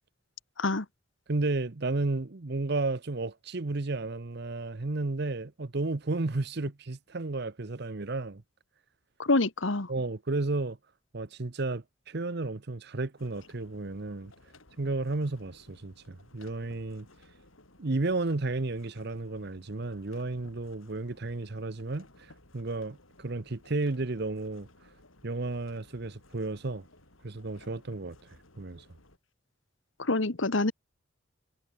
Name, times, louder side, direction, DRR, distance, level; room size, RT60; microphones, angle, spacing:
voice 1, 1.3-8.4 9.9-10.8 11.1-14.3 14.8-17.1 17.8-24.7 25.2-26.8 27.2-28.2 28.6-28.8, right 2 dB, 55° right, 0.9 m, -32 dB
voice 2, 9.2-9.9 30.0-30.7, left 2 dB, 70° left, 1.6 m, -26 dB
sound 1, 13.2-29.2, left 2 dB, 90° left, 6.4 m, -58 dB
head